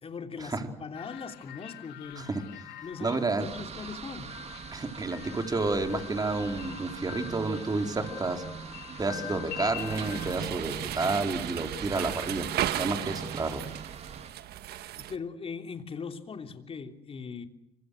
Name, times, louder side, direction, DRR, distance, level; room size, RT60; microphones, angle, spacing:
voice 1, 0.0-4.4 15.0-17.5, left 5 dB, 35° left, 3.3 m, -40 dB
sound 1, 0.9-10.3, left 14 dB, 85° left, 2.4 m, -45 dB
voice 2, 3.0-3.5 4.7-8.4 9.0-12.5 12.8-13.6, right 3 dB, 25° right, 4.1 m, -30 dB
sound 2, 3.4-14.3, right 6 dB, 40° right, 2.0 m, -42 dB
sound 3, 9.8-15.2, right 12 dB, 70° right, 1.6 m, -35 dB
25.5 x 25.0 x 6.5 m
cardioid pair, 110°, 17 cm